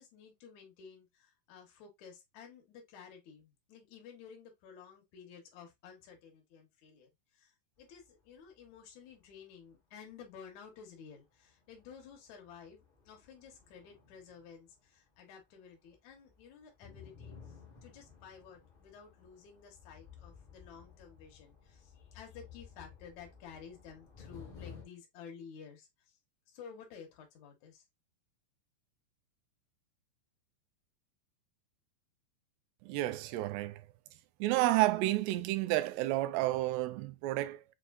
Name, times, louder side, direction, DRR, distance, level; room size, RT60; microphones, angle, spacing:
voice 1, 0.0-12.8 13.0-26.2 26.5-27.8, left 7 dB, 80° left, 1.6 m, -53 dB
sound 1, 7.8-8.8 9.1-9.3 10.1-10.2 10.8-10.9 11.2-15.6 15.8-24.8, left 6 dB, 45° left, 0.6 m, -55 dB
voice 2, 32.8-33.8 34.4-37.6, right 17 dB, 85° right, 2.4 m, -30 dB
6.6 x 2.6 x 2.4 m
omnidirectional pair, 5.0 m